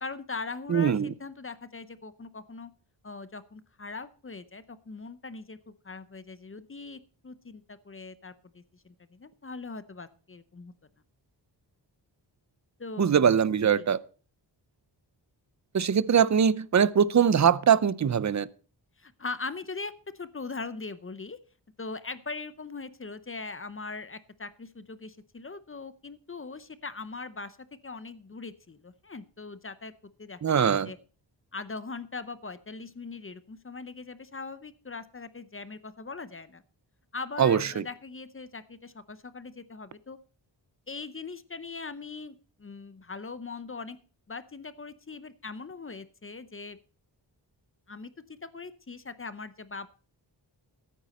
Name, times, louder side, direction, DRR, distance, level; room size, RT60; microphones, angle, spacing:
voice 1, 0.0-2.7 3.0-10.7 12.8-13.1 13.8-13.9 19.0-21.4 21.8-27.6 27.8-29.9 30.2-31.0 31.5-36.6 37.1-40.2 40.9-44.0 44.3-46.8 47.9-49.9, left 4 dB, 30° left, 0.7 m, -40 dB
voice 2, 0.7-1.1 13.0-14.0 15.7-18.5 30.4-30.9 37.4-37.8, right 7 dB, 40° right, 0.6 m, -22 dB
14.0 x 9.1 x 4.2 m
wide cardioid pair, 140°, 43 cm